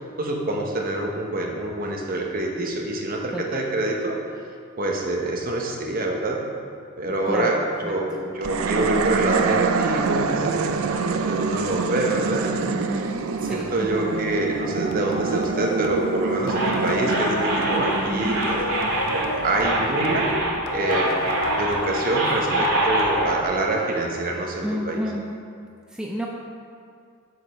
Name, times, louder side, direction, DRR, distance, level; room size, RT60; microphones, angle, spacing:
voice 1, 0.2-4.2 4.8-6.5 7.0-7.6 7.8-12.7 13.5-18.7 19.1-20.3 20.7-25.0, right 2 dB, 40° right, 0 dB, 1.0 m, -26 dB
voice 2, 3.3-3.6 7.3-7.9 12.6-14.1 18.1-18.5 22.5-22.7 24.6-25.2 25.9-26.3, equal, 5° right, -2 dB, 0.4 m, -30 dB
sound 1, 8.4-19.8, right 4 dB, 65° right, 0.4 m, -26 dB
sound 2, 14.9-24.1, left 2 dB, 60° left, 0.6 m, -32 dB
sound 3, 16.5-23.3, right 1 dB, 85° right, 2.3 m, -25 dB
7.8 x 5.0 x 6.3 m, 2.3 s
head